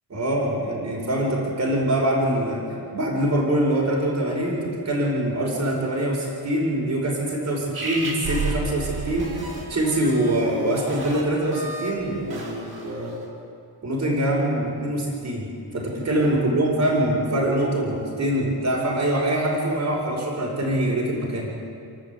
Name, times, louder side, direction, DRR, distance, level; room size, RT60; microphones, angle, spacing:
voice 1, 0.1-2.6 2.9-13.2 13.8-21.6, right 1 dB, 40° right, -2 dB, 4.8 m, -24 dB
sound 1, 7.7-13.2, right 2 dB, 55° right, 5.2 m, -32 dB
30.0 x 12.0 x 8.2 m, 2.5 s
wide cardioid pair, 160°, 43 cm